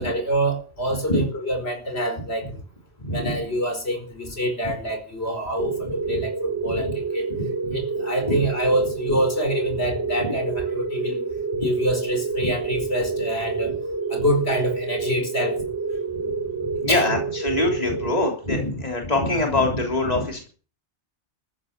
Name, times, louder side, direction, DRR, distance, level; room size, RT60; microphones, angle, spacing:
voice 1, 0.0-2.6 3.1-7.3 7.7-11.2 11.6-13.8 14.1-15.6 16.9-17.1, equal, 65° left, 5 dB, 5.1 m, -26 dB
voice 2, 3.0-3.4 6.0-6.2 6.7-7.0 7.3-7.8 8.3-8.4 10.2-10.4 12.4-12.5 16.2-16.3 16.7-20.5, left 2 dB, 35° left, 1 dB, 3.6 m, -24 dB
sound 1, 5.6-18.7, right 4 dB, 70° right, 3.9 m, -28 dB
14.0 x 12.0 x 7.5 m, 0.39 s
omnidirectional pair, 1.2 m